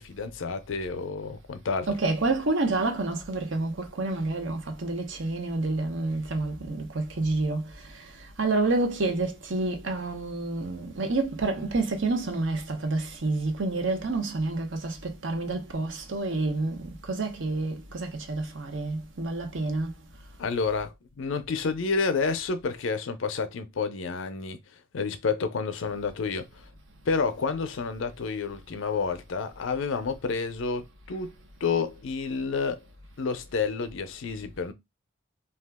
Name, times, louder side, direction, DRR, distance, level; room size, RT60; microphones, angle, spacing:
voice 1, 0.0-1.9 20.4-24.6 24.9-26.6 27.1-31.3 31.6-32.8 33.2-34.7, left 4 dB, 80° left, 0.5 m, -29 dB
voice 2, 1.9-19.9, right 2 dB, 70° right, 0.8 m, -29 dB
2.8 x 2.3 x 3.4 m
head